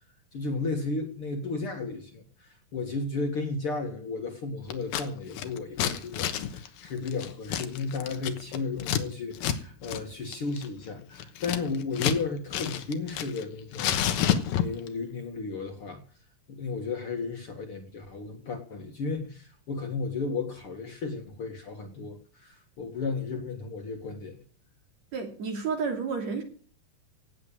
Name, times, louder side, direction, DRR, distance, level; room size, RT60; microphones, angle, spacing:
voice 1, 0.3-14.3 14.6-16.0 16.5-24.4, left 4 dB, 45° left, 4 dB, 2.3 m, -34 dB
Scissors, 4.7-5.1 5.3-9.0 9.4-9.6 9.8-10.0 10.3-12.2 12.5-13.4 13.7-14.9, left 9 dB, 85° left, 2.9 m, -29 dB
voice 2, 25.1-26.4, right 5 dB, 55° right, 4 dB, 3.8 m, -31 dB
17.5 x 7.7 x 8.8 m, 0.44 s
omnidirectional pair, 4.0 m